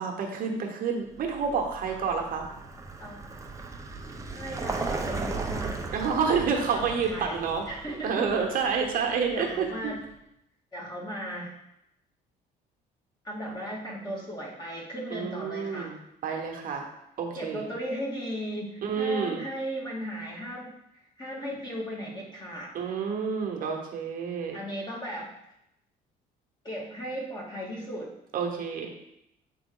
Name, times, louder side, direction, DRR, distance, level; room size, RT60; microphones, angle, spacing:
voice 1, 0.0-2.5 5.9-7.6 8.0-10.0 15.1-16.0 16.2-16.9 17.2-17.7 18.8-19.4 22.7-24.6 28.3-28.9, right 6 dB, 55° right, 2 dB, 1.0 m, -29 dB
Vehicle, 1.2-10.0, right 3 dB, 20° right, 0.7 m, -37 dB
voice 2, 4.3-5.8 6.7-8.3 9.3-10.0 10.7-11.5 13.2-16.0 17.4-20.7 21.2-22.7 24.5-25.3 26.6-28.1, equal, 25° left, -3 dB, 1.9 m, -36 dB
7.8 x 3.5 x 3.8 m, 0.81 s
cardioid pair, 110°, 17 cm